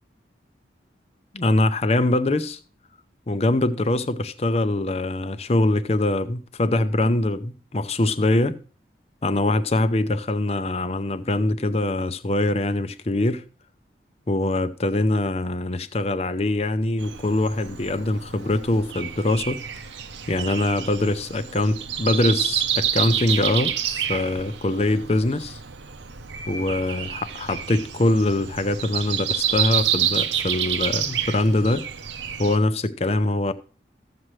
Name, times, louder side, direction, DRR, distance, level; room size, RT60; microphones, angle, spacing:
voice 1, 1.3-2.6 3.3-8.6 9.2-13.4 14.3-19.6 20.3-25.6 26.5-31.9 32.4-33.5, left 2 dB, 35° left, 0.6 m, -23 dB
Breathing, 17.0-32.6, right 9 dB, 90° right, 0.8 m, -28 dB
14.0 x 7.5 x 3.2 m
head